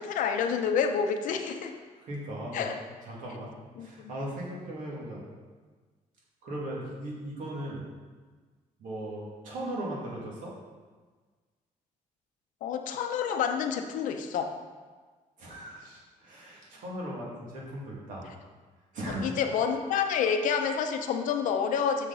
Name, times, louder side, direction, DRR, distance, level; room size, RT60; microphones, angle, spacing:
voice 1, 0.0-1.8 2.5-2.8 3.8-4.1 12.6-14.6 19.1-22.1, left 7 dB, 80° left, 5 dB, 0.6 m, -28 dB
voice 2, 2.0-2.7 3.1-3.5 3.8-5.2 6.4-7.9 8.8-10.5 15.4-18.3 18.9-19.2, right 1 dB, 80° right, -4 dB, 2.2 m, -38 dB
6.7 x 6.3 x 4.0 m, 1.4 s
cardioid pair, 175°, 13 cm